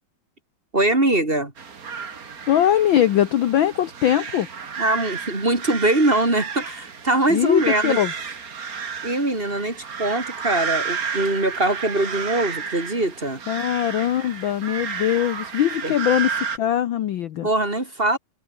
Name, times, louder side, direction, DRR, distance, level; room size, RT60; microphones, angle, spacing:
voice 1, 0.7-1.5 4.8-8.0 9.0-13.4 15.8-15.9 17.4-18.2, right 2 dB, 20° right, 3.0 m, -22 dB
sound 1, 1.6-16.6, right 6 dB, 35° right, 1.8 m, -32 dB
voice 2, 2.5-4.5 7.3-8.1 13.5-16.3 16.6-17.5, left 11 dB, 75° left, 1.1 m, -21 dB
omnidirectional pair, 3.4 m